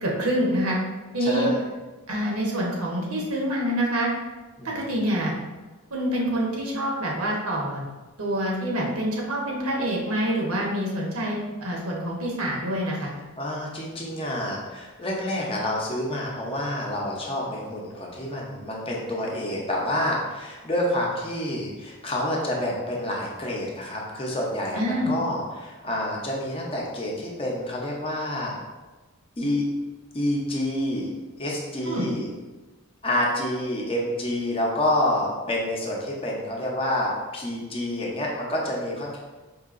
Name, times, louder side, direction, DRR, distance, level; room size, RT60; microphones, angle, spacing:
voice 1, 0.0-0.8 1.1-1.5 2.1-4.1 4.6-5.3 5.9-7.8 8.2-13.1 24.7-25.1 31.8-32.1, equal, 80° right, -2 dB, 0.9 m, -26 dB
voice 2, 1.3-1.6 4.6-4.7 13.4-28.5 29.4-29.7 30.1-31.1 31.4-32.3 33.0-39.2, left 1 dB, 25° left, -2 dB, 0.6 m, -28 dB
4.8 x 2.7 x 2.5 m, 1.2 s
head